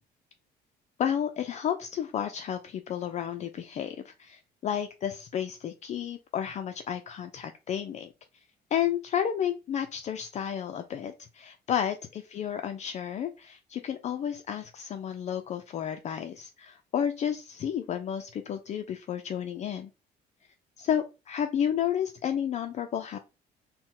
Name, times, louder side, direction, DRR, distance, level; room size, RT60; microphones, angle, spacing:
voice 1, 1.0-8.1 8.7-19.9 20.8-23.2, left 9 dB, 40° left, 7 dB, 0.4 m, -32 dB
4.1 x 2.1 x 3.7 m, 0.29 s
cardioid pair, 110°, 17 cm